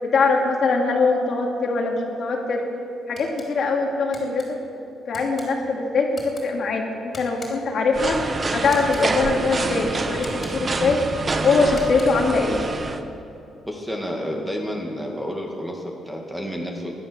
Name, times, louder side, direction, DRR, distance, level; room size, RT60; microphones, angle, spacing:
voice 1, 0.0-2.6 3.1-4.6 5.1-11.0 11.3-12.6, left 3 dB, 55° left, 1 dB, 2.3 m, -22 dB
sound 1, 3.1-3.5 4.1-4.5 5.1-5.5 6.1-6.4 7.1-7.7 8.6-9.1 10.1-10.7 11.6-12.3, left 3 dB, 35° left, 3.4 m, -41 dB
sound 2, 7.9-13.0, right 3 dB, 30° right, 0.9 m, -27 dB
voice 2, 13.7-16.9, equal, 5° right, 0 dB, 2.0 m, -30 dB
17.0 x 11.5 x 6.6 m, 2.7 s
cardioid pair, 140°, 0 cm